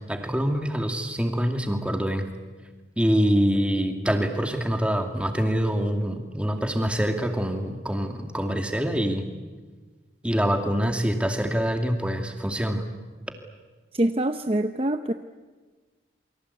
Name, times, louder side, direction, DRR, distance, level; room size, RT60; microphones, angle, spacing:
voice 1, 0.0-2.3 3.0-9.2 10.2-12.8, equal, 5° right, 4 dB, 2.4 m, -25 dB
voice 2, 13.9-15.1, right 1 dB, 30° right, 8 dB, 0.8 m, -24 dB
28.5 x 24.0 x 8.3 m, 1.3 s
head